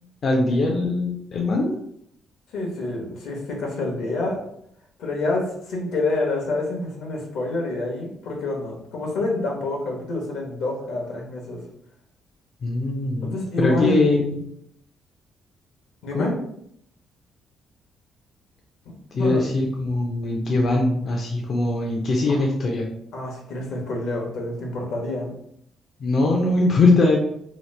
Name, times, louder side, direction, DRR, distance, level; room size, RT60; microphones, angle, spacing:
voice 1, 0.2-1.7 12.6-14.4 16.1-16.3 19.1-22.9 26.0-27.2, left 2 dB, 50° left, -1 dB, 0.5 m, -21 dB
voice 2, 2.5-4.4 5.0-11.6 13.2-14.0 16.0-16.3 18.8-19.5 22.3-22.5 23.1-25.3, left 2 dB, 80° left, 0 dB, 0.9 m, -27 dB
2.9 x 2.1 x 3.1 m, 0.71 s
cardioid pair, 90°, 0 cm